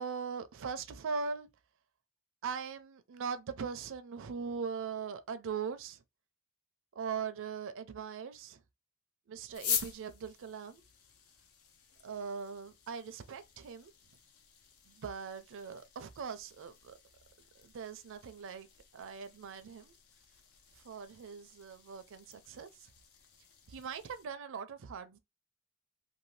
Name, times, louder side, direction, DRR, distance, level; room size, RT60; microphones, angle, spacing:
voice 1, 0.0-1.5 2.4-6.0 6.9-8.6 9.3-10.8 12.0-13.9 14.9-17.0 17.6-18.7 18.9-19.9 20.8-22.9 23.7-25.2, right 6 dB, 65° right, 0.4 m, -40 dB
sound 1, 9.5-24.3, left 8 dB, 75° left, 0.7 m, -45 dB
2.6 x 2.6 x 3.1 m
head